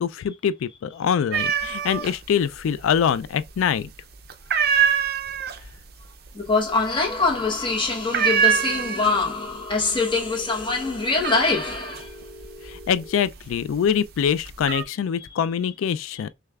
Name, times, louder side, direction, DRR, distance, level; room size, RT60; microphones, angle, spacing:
voice 1, 0.0-3.9 12.6-16.3, left 8 dB, 85° left, 0.3 m, -24 dB
sound 1, 1.3-2.1 2.5-3.2 3.6-4.0 4.3-9.4 9.7-10.3 10.6-13.7 14.2-14.8, right 8 dB, 50° right, 0.5 m, -24 dB
voice 2, 6.3-12.2 15.2-15.4, left 3 dB, 25° left, 0.9 m, -24 dB
Telephone, 8.2-13.2, left 1 dB, 5° left, 1.3 m, -43 dB
6.4 x 2.3 x 2.3 m
head